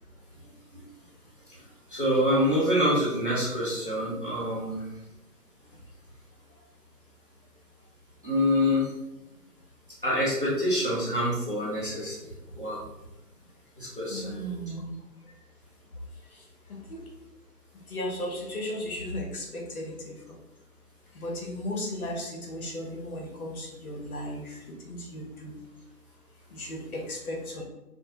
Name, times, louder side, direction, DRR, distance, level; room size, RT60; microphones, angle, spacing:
voice 1, 1.9-4.8 8.2-8.9 10.0-12.3 12.5-12.8 13.8-14.4, equal, 35° right, -6 dB, 0.5 m, -26 dB
voice 2, 14.1-14.9 16.7-17.0 17.9-20.4 21.1-25.6 26.5-27.6, left 1 dB, 60° left, 1 dB, 0.8 m, -36 dB
2.6 x 2.1 x 2.9 m, 0.96 s
figure-of-eight pair, 170°, 48 cm